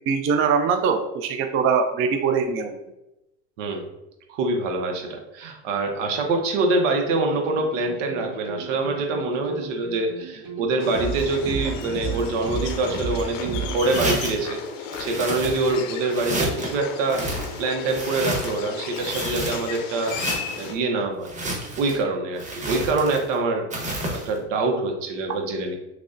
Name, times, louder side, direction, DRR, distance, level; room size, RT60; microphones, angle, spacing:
voice 1, 0.1-2.7, right 6 dB, 40° right, 7 dB, 0.4 m, -22 dB
voice 2, 4.3-17.3 17.6-20.2 20.5-21.3 21.8-23.9 24.1-25.8, right 2 dB, 85° right, 3 dB, 0.8 m, -25 dB
sound 1, 7.3-14.1, right 5 dB, 60° right, 1.3 m, -34 dB
sound 2, 10.8-20.7, left 7 dB, 80° left, 0.7 m, -35 dB
sound 3, 13.8-14.5 14.9-15.8 16.1-16.7 17.1-18.6 18.9-19.8 20.0-20.7 21.2-22.0 22.4-23.3 23.7-24.3, right 1 dB, 20° right, 1.1 m, -30 dB
5.9 x 2.1 x 2.5 m, 0.93 s
supercardioid pair, 100°, 36 cm